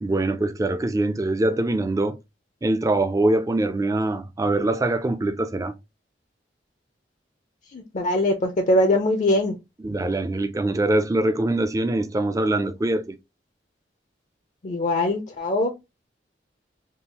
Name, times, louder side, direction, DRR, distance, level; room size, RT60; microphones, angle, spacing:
voice 1, 0.0-2.2 2.6-5.7 9.8-13.2, right 2 dB, 20° right, 0.4 m, -23 dB
voice 2, 7.7-9.5 14.6-15.7, left 1 dB, 45° left, 0.5 m, -22 dB
3.7 x 2.4 x 2.8 m
head